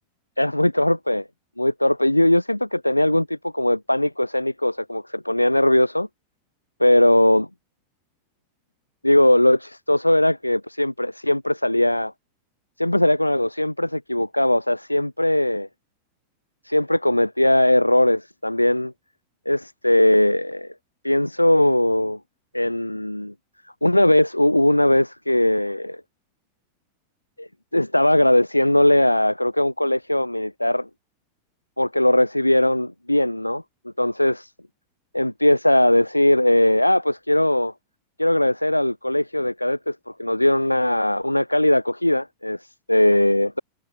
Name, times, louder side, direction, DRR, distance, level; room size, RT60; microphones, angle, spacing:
voice 1, 0.4-1.2 1.6-6.1 6.8-7.5 9.0-12.1 12.8-15.7 16.6-18.9 19.5-20.7 21.0-22.2 22.5-23.3 23.8-26.0 27.4-30.9 31.8-33.6 34.0-34.5 35.1-37.7 38.2-43.6, left 1 dB, 85° left, 7.1 m, -19 dB
figure-of-eight pair, 90°, 0 cm